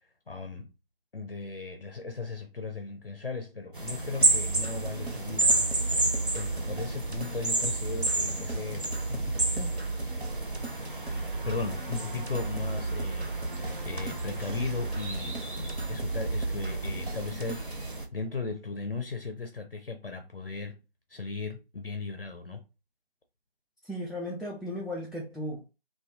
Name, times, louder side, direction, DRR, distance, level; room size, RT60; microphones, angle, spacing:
voice 1, 0.3-0.7 1.1-5.7 5.9-9.8 11.1-13.3 13.5-15.4 15.9-20.8 21.1-22.6, left 4 dB, 65° left, 0.5 m, -37 dB
sound 1, 3.7-18.1, right 2 dB, 55° right, 0.5 m, -32 dB
sound 2, 4.2-17.9, right 2 dB, 90° right, 0.8 m, -35 dB
voice 2, 23.8-25.7, equal, ahead, 0.4 m, -36 dB
2.2 x 2.1 x 2.7 m
figure-of-eight pair, 175°, 31 cm